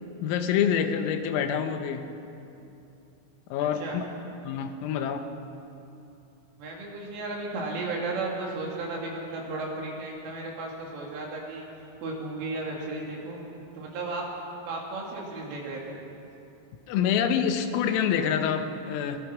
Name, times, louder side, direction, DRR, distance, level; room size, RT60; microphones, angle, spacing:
voice 1, 0.2-2.1 3.5-4.1 4.5-5.3 16.9-19.3, left 8 dB, 90° left, 7 dB, 3.8 m, -26 dB
voice 2, 3.6-4.0 6.6-11.7 12.0-13.4 13.8-14.2 14.7-16.0, right 2 dB, 70° right, -2 dB, 5.5 m, -34 dB
23.0 x 19.5 x 6.1 m, 2.8 s
omnidirectional pair, 5.9 m